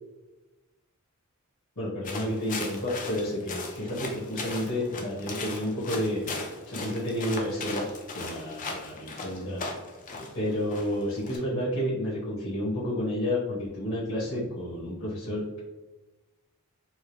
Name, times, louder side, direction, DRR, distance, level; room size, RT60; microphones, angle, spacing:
voice 1, 1.7-6.2 6.7-7.9 8.1-9.7 10.3-15.6, left 1 dB, 85° left, -9 dB, 1.4 m, -30 dB
sound 1, 2.0-11.4, left 3 dB, 35° left, 0.5 m, -38 dB
4.7 x 2.1 x 3.0 m, 1.1 s
head